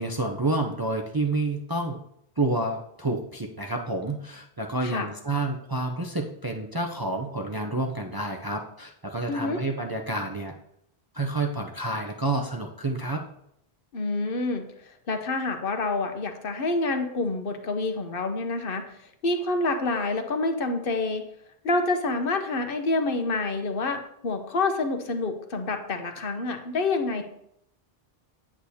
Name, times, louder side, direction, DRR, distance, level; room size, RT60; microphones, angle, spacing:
voice 1, 0.0-2.0 2.4-10.5 11.1-13.2, right 2 dB, 30° right, 1 dB, 0.5 m, -29 dB
voice 2, 9.3-9.6 13.9-14.6 15.1-18.8 19.2-21.2 21.6-27.2, left 3 dB, 65° left, 6 dB, 1.0 m, -27 dB
8.4 x 7.9 x 2.8 m, 0.74 s
omnidirectional pair, 1.0 m